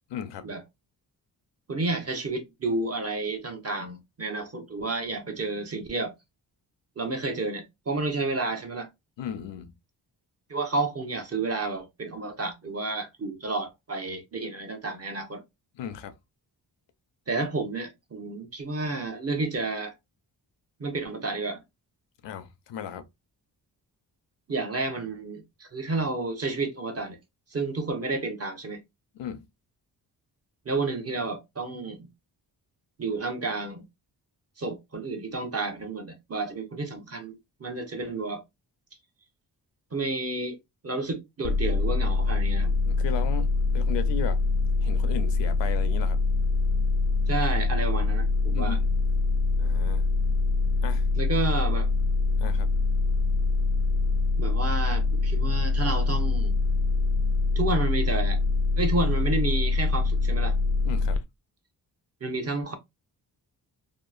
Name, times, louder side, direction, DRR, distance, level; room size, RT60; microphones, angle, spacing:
voice 1, 0.1-0.5 9.2-9.7 15.7-16.1 22.2-23.1 29.1-29.5 42.9-44.4 44.8-46.2 48.5-48.9 49.6-50.1 50.8-51.0 52.4-52.7 60.8-61.2, left 8 dB, 75° left, 0.6 m, -36 dB
voice 2, 1.7-6.1 7.0-8.9 10.5-15.4 17.3-19.9 20.8-21.6 24.5-27.2 27.5-28.8 30.6-32.1 33.0-33.8 34.6-38.4 39.9-40.6 40.8-42.7 47.3-48.8 51.2-51.9 54.4-56.6 57.6-58.4 58.8-60.6 62.2-62.7, right 3 dB, 35° right, 0.8 m, -31 dB
sound 1, 41.4-61.2, left 3 dB, 35° left, 0.4 m, -24 dB
2.9 x 2.0 x 2.3 m
cardioid pair, 65°, 43 cm